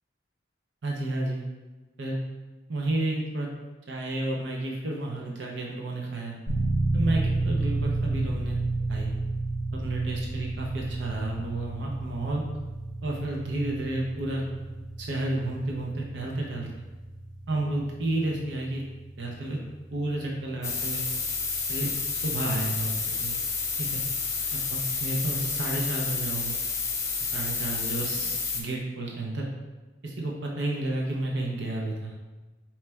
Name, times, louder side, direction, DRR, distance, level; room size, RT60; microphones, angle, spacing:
voice 1, 0.8-1.4 2.0-2.2 2.7-3.5 3.9-6.4 6.9-8.6 8.9-9.1 9.7-12.4 13.0-14.4 15.0-16.7 17.5-18.8 19.2-19.6 19.9-21.0 21.7-22.0 22.2-23.4 23.8-24.0 24.5-26.6 27.2-29.5 30.0-32.1, right 2 dB, 65° right, -1 dB, 0.6 m, -31 dB
sound 1, 6.5-23.2, right 2 dB, 85° right, 1.2 m, -32 dB
sound 2, 20.6-28.6, left 5 dB, 15° left, 0.5 m, -30 dB
4.3 x 3.1 x 3.4 m, 1.2 s
head